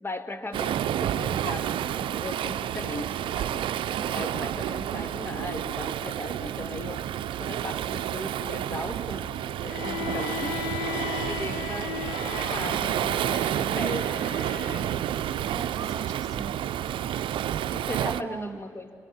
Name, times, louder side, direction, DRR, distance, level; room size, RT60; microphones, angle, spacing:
voice 1, 0.0-3.7 4.1-7.1 7.4-10.7 11.2-12.0 12.3-14.9 17.7-18.9, left 2 dB, 25° left, 7 dB, 2.1 m, -38 dB
Waves surf, 0.5-18.2, right 11 dB, 65° right, 0.6 m, -30 dB
voice 2, 4.0-4.4 15.5-16.6 17.8-18.6, right 5 dB, 40° right, 10 dB, 1.6 m, -38 dB
Bowed string instrument, 9.7-14.9, left 14 dB, 85° left, 0.5 m, -37 dB
29.0 x 25.0 x 5.7 m, 2.2 s
hypercardioid pair, 45°, 9 cm